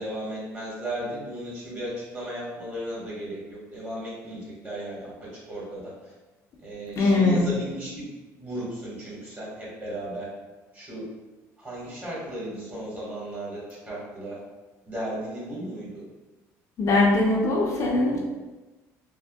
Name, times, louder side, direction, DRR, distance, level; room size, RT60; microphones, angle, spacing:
voice 1, 0.0-5.1 5.5-5.9 6.6-7.9 8.4-10.3 10.7-11.0 11.6-13.6 13.8-14.4 14.8-16.0, right 1 dB, 25° right, -6 dB, 1.5 m, -35 dB
voice 2, 7.0-7.5 16.8-18.2, left 2 dB, 50° left, -3 dB, 0.6 m, -21 dB
3.5 x 2.1 x 2.3 m, 1.2 s
supercardioid pair, 95°, 7 cm